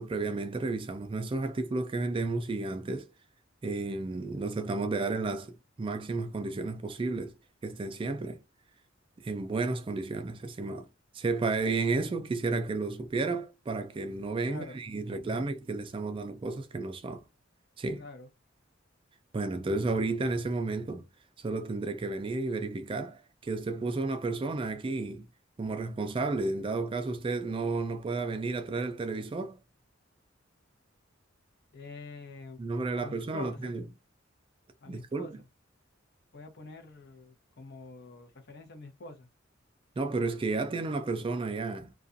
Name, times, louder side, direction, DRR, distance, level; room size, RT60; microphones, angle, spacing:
voice 1, 0.0-3.1 3.6-7.4 7.6-8.4 9.2-10.9 11.1-17.2 17.8-18.0 19.3-21.1 21.4-25.3 25.6-29.6 32.6-33.9 34.9-35.3 40.0-41.9, right 3 dB, 25° right, 0.3 m, -32 dB
voice 2, 14.5-14.8 17.9-18.3 31.7-32.6 32.9-33.7 34.8-35.5 36.3-39.3, left 3 dB, 60° left, 0.7 m, -46 dB
2.4 x 2.3 x 2.5 m
head